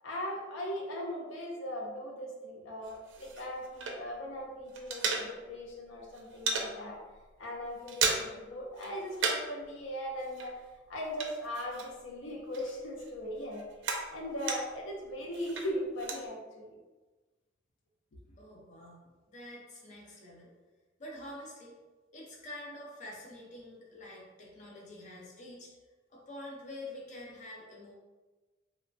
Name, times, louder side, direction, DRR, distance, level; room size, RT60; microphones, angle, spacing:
voice 1, 0.0-7.0 7.4-10.5 10.9-13.6 14.1-16.7, equal, 90° left, -1 dB, 0.5 m, -39 dB
sound 1, 2.8-4.3 4.6-5.7 6.0-6.7 7.1-7.3 7.6-8.5 8.8-9.6 9.9-12.2 12.5-14.9 15.3-16.2, right 4 dB, 75° right, 0.4 m, -35 dB
voice 2, 18.4-20.5 21.0-21.7 22.1-25.7 26.1-27.9, left 1 dB, 40° left, -4 dB, 0.6 m, -47 dB
3.0 x 2.1 x 2.6 m, 1.2 s
head